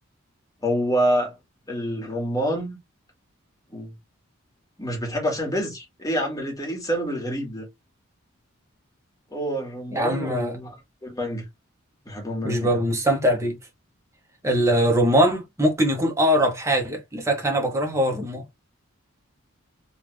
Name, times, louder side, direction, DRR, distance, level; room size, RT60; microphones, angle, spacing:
voice 1, 0.6-1.4 1.7-2.8 3.7-3.9 4.8-7.7 9.3-10.7 11.0-11.4 12.0-12.8, equal, 15° left, 1.7 m, -27 dB
voice 2, 9.9-10.6 12.4-13.6 14.4-18.5, equal, 15° right, 0.9 m, -22 dB
3.5 x 2.4 x 3.2 m
head